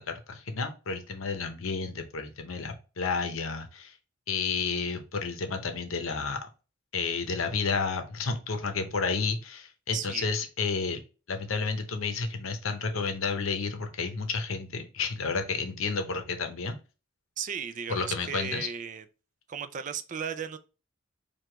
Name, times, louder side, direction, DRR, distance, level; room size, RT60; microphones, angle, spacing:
voice 1, 0.0-4.0 4.3-6.5 6.9-11.0 11.3-16.8 17.9-18.7, left 4 dB, 80° left, 0.7 m, -31 dB
voice 2, 9.9-10.3 17.4-19.1 19.5-20.6, right 7 dB, 40° right, 0.3 m, -35 dB
4.7 x 2.4 x 3.2 m
head